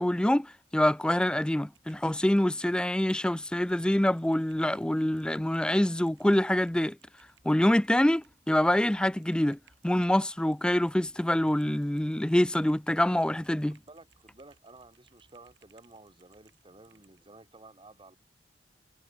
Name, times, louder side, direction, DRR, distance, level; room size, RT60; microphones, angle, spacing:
voice 1, 0.0-7.0 7.4-9.6 9.8-13.8, left 1 dB, 5° left, 0.3 m, -25 dB
Typing, 1.7-17.2, right 5 dB, 80° right, 7.5 m, -66 dB
voice 2, 13.7-18.2, right 2 dB, 30° right, 2.8 m, -53 dB
head